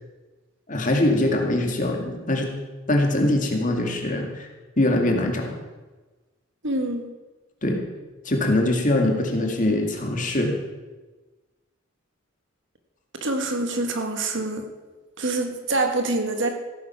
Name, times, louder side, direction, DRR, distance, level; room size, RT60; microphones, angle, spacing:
voice 1, 0.7-2.5 2.9-4.5 4.8-5.5 7.6-7.8 8.2-10.5, left 1 dB, 40° left, 1 dB, 2.2 m, -22 dB
voice 2, 6.6-7.1 13.2-14.6 15.2-16.5, right 2 dB, 60° right, 5 dB, 1.6 m, -25 dB
15.5 x 9.4 x 5.8 m, 1.2 s
head